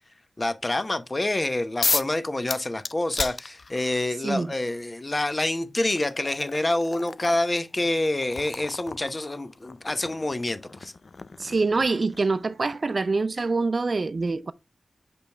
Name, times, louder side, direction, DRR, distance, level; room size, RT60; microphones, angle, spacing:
voice 1, 0.4-10.9, left 2 dB, 25° left, 0.8 m, -27 dB
sound 1, 1.8-2.2 2.5-4.0 5.1-5.2 5.8-12.4, left 3 dB, 45° left, 0.3 m, -34 dB
voice 2, 11.4-14.5, right 3 dB, 45° right, 0.5 m, -25 dB
6.9 x 5.1 x 3.4 m
wide cardioid pair, 130°, 0 cm